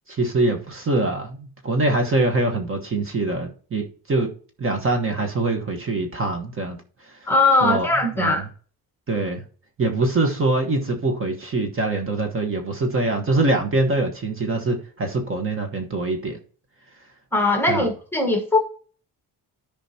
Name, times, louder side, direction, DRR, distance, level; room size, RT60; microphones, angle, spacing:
voice 1, 0.1-4.3 4.6-6.8 7.6-7.9 8.2-8.4 9.1-9.4 9.8-16.4 17.7-17.8, right 2 dB, 35° right, 1.2 m, -23 dB
voice 2, 7.3-8.4 17.3-18.6, left 2 dB, 5° left, 1.2 m, -20 dB
13.5 x 5.1 x 2.8 m
wide cardioid pair, 160°, 37 cm